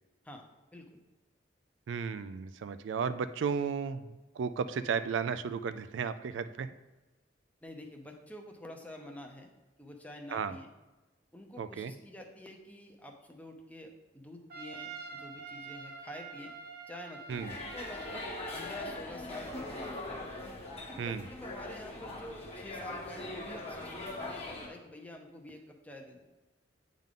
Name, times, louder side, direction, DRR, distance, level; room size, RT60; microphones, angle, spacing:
voice 1, 1.9-4.1 4.4-6.7 10.3-10.6 11.6-11.9 17.3-17.5 21.0-21.2, right 6 dB, 80° right, 12 dB, 0.3 m, -34 dB
voice 2, 7.6-9.5 9.8-10.7 11.3-16.5 16.9-19.9 20.9-26.2, left 1 dB, 10° left, 3 dB, 0.7 m, -48 dB
Trumpet, 14.5-18.9, right 4 dB, 55° right, 0.8 m, -46 dB
sound 1, 17.3-24.7, left 2 dB, 35° left, 1.2 m, -41 dB
8.9 x 3.7 x 3.7 m, 1.1 s
head